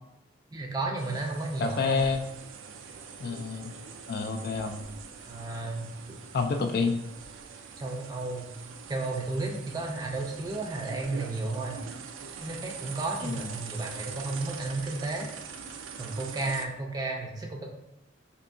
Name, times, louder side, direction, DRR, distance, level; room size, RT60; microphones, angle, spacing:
voice 1, 0.5-2.0 5.2-6.2 7.8-8.5 8.9-11.8 12.4-15.3 16.0-17.7, right 2 dB, 20° right, 0 dB, 0.5 m, -33 dB
sound 1, 1.0-16.7, right 6 dB, 80° right, 0.4 m, -43 dB
voice 2, 1.6-2.3 3.2-3.7 4.1-4.8 6.3-7.0 13.2-13.6, left 4 dB, 50° left, 6 dB, 0.3 m, -28 dB
4.4 x 2.7 x 2.6 m, 0.87 s
head